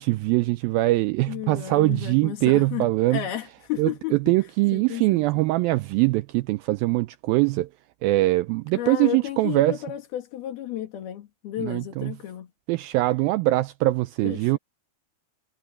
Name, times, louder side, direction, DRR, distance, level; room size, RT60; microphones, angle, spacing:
voice 1, 0.0-3.2 3.8-7.7 8.0-9.7 11.6-12.1 12.7-14.6, right 19 dB, 85° right, 2.1 m, -22 dB
voice 2, 1.3-4.3 4.7-5.3 8.7-12.5 14.2-14.6, left 12 dB, 70° left, 3.9 m, -33 dB
omnidirectional pair, 4.6 m